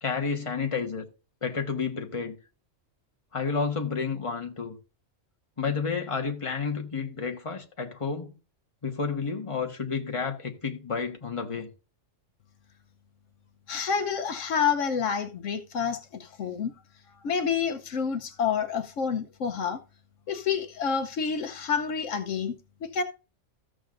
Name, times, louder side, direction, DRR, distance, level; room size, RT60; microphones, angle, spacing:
voice 1, 0.0-1.1 1.4-2.4 3.3-4.8 5.6-8.3 8.8-11.7, left 5 dB, 25° left, 1.3 m, -30 dB
voice 2, 13.7-16.7 17.2-19.8 20.3-22.5 22.8-23.0, left 6 dB, 75° left, 1.1 m, -28 dB
14.0 x 7.6 x 2.5 m
omnidirectional pair, 1.3 m